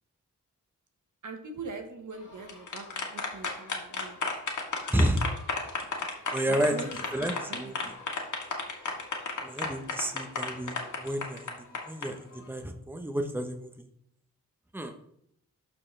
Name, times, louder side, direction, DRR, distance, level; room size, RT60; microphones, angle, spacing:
voice 1, 1.2-4.2 6.5-6.9 7.5-7.9, right 3 dB, 65° right, 5 dB, 1.4 m, -42 dB
sound 1, 2.3-12.1, left 4 dB, 65° left, 1.9 m, -33 dB
voice 2, 4.9-5.3 6.3-6.7 7.1-7.8 9.4-13.9 14.7-14.9, right 1 dB, 5° right, 5 dB, 1.0 m, -31 dB
12.5 x 4.4 x 3.3 m, 0.71 s
cardioid pair, 55°, 33 cm